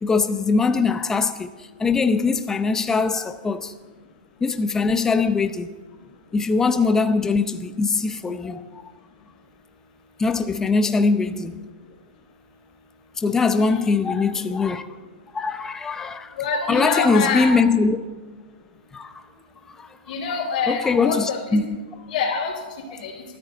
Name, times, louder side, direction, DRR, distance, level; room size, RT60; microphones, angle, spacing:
voice 1, 0.0-1.5 1.8-3.7 4.4-5.7 6.3-8.7 10.2-11.7 13.2-14.8 15.3-16.3 16.7-18.0 18.9-19.2 19.8-19.9 20.7-21.7, left 4 dB, 10° left, 0.7 m, -21 dB
voice 2, 13.5-14.0 16.4-17.5 20.1-21.6 22.1-22.5 22.9-23.2, left 5 dB, 50° left, 4.5 m, -26 dB
19.0 x 13.5 x 4.0 m
hypercardioid pair, 160°, 5 cm